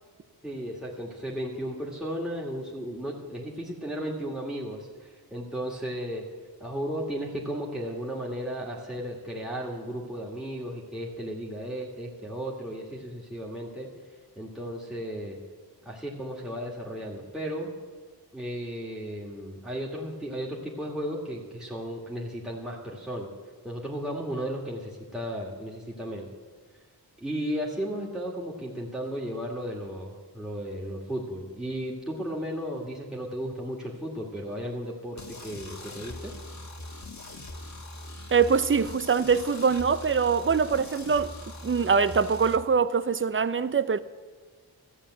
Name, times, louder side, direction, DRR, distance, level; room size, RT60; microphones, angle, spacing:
voice 1, 0.4-6.2 6.6-13.9 14.4-15.4 15.8-17.7 18.3-23.3 23.6-26.3 27.2-36.3, equal, ahead, 2.0 m, -34 dB
sound 1, 35.2-42.6, left 1 dB, 45° left, 1.4 m, -41 dB
voice 2, 38.3-41.3 41.6-44.0, right 5 dB, 30° right, 0.6 m, -23 dB
13.5 x 7.2 x 7.8 m
cardioid pair, 60°, 41 cm